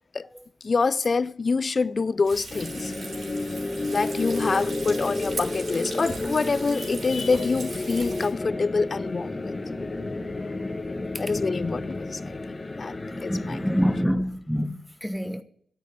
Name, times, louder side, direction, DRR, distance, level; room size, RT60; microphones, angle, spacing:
voice 1, 0.6-2.9 3.9-9.5 11.2-12.4 12.7-12.9 13.2-13.6, left 4 dB, 45° left, 0.4 m, -26 dB
Frying (food), 2.3-8.3, right 3 dB, 65° right, 3.6 m, -39 dB
sound 1, 2.5-14.0, left 2 dB, 30° left, 1.6 m, -31 dB
voice 2, 13.3-15.4, equal, ahead, 1.0 m, -26 dB
9.6 x 8.4 x 9.3 m
cardioid pair, 65°, 0 cm